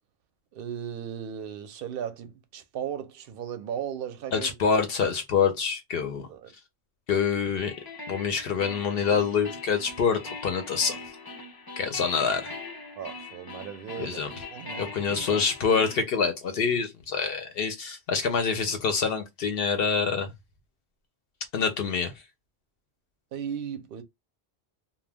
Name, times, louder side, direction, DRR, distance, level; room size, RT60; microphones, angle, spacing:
voice 1, 0.5-4.6 6.3-6.5 13.0-15.3 23.3-24.0, right 8 dB, 65° right, 0.7 m, -36 dB
voice 2, 4.3-6.3 7.1-7.7 8.1-11.0 11.8-12.5 14.0-14.3 14.8-20.3 21.5-22.1, left 6 dB, 65° left, 0.7 m, -26 dB
sound 1, 7.6-16.0, left 3 dB, 25° left, 0.5 m, -41 dB
2.2 x 2.1 x 3.3 m
omnidirectional pair, 1.1 m